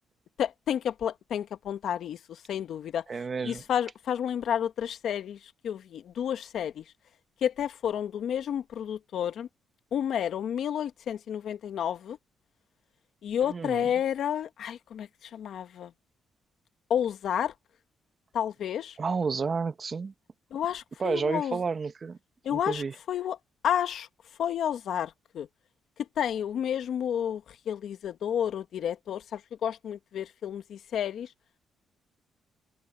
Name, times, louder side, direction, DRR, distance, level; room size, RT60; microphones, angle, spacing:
voice 1, 0.4-3.0 3.4-5.4 5.6-6.8 7.4-9.5 9.9-12.2 13.2-15.9 16.9-17.5 18.3-19.0 20.5-21.6 22.4-22.8 23.1-23.4 23.6-24.1 24.4-25.5 26.2-27.4 27.7-31.3, left 9 dB, 65° left, 1.5 m, -30 dB
voice 2, 3.1-3.6 13.4-13.9 19.0-20.1 21.0-22.2 22.5-22.9, right 5 dB, 35° right, 1.3 m, -31 dB
open air
cardioid pair, 110°, 0 cm